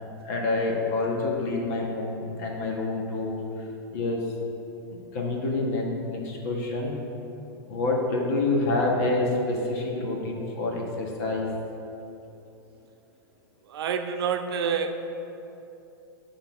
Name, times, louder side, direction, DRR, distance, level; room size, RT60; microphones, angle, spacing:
voice 1, 0.2-3.4 3.9-4.2 5.1-6.9 7.7-11.5, left 2 dB, 45° left, -1 dB, 1.4 m, -27 dB
voice 2, 13.7-15.1, right 6 dB, 80° right, 6 dB, 0.7 m, -28 dB
9.5 x 3.8 x 6.0 m, 2.9 s
supercardioid pair, 165°, 13 cm